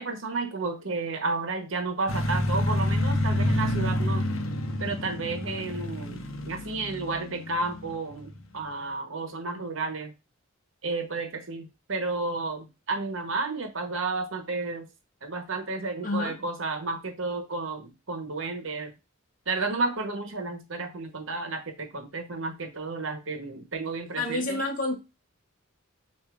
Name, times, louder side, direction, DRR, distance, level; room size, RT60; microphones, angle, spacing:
voice 1, 0.0-4.2 4.8-10.1 10.8-14.9 15.2-18.9 19.5-24.6, right 3 dB, 65° right, 1.0 m, -32 dB
sound 1, 2.1-8.3, left 1 dB, 70° left, 0.8 m, -28 dB
voice 2, 16.0-16.4 24.2-25.0, left 2 dB, 40° left, 1.1 m, -28 dB
6.6 x 2.7 x 2.4 m
head